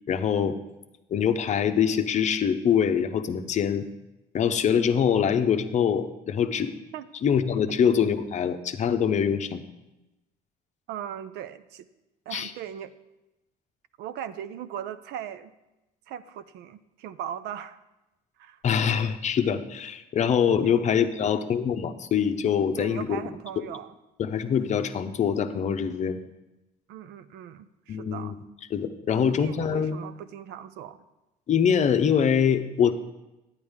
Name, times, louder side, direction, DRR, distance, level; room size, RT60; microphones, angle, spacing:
voice 1, 0.1-0.5 1.1-3.9 4.3-6.8 7.2-9.6 12.3-12.5 18.6-23.1 24.2-26.2 27.9-28.3 28.7-30.0 31.5-32.9, left 7 dB, 45° left, 8 dB, 0.7 m, -24 dB
voice 2, 10.9-11.9 12.3-12.9 14.0-15.5 16.1-17.8 18.4-18.6 20.6-20.8 21.2-21.4 22.8-23.9 26.9-28.4 29.1-31.1, right 10 dB, 80° right, 13 dB, 0.5 m, -39 dB
9.7 x 9.6 x 3.6 m, 0.98 s
cardioid pair, 110°, 17 cm